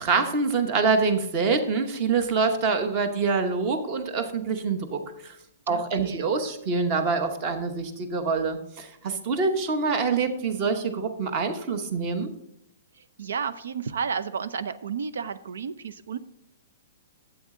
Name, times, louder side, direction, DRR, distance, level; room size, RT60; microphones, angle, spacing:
voice 1, 0.0-5.4 5.7-12.3, right 4 dB, 25° right, 8 dB, 1.0 m, -25 dB
voice 2, 5.7-6.3 12.9-16.2, right 6 dB, 85° right, 13 dB, 0.5 m, -32 dB
12.0 x 8.4 x 3.8 m, 0.78 s
hypercardioid pair, 180°, 0 cm